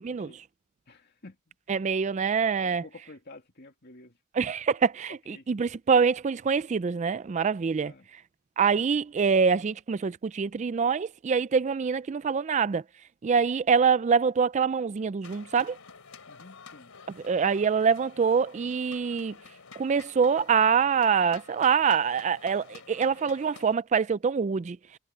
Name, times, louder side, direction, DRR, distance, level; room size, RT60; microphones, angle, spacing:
voice 1, 0.1-0.4 0.9-1.9 2.6-4.2 5.1-5.5 7.8-8.1 16.3-16.9, left 2 dB, 50° left, 2.5 m, -50 dB
voice 2, 1.7-2.8 4.4-7.9 8.6-12.8 13.2-15.8 17.2-19.3 19.8-24.8, right 6 dB, 30° right, 0.3 m, -25 dB
sound 1, 15.2-23.8, left 5 dB, 80° left, 2.9 m, -50 dB
head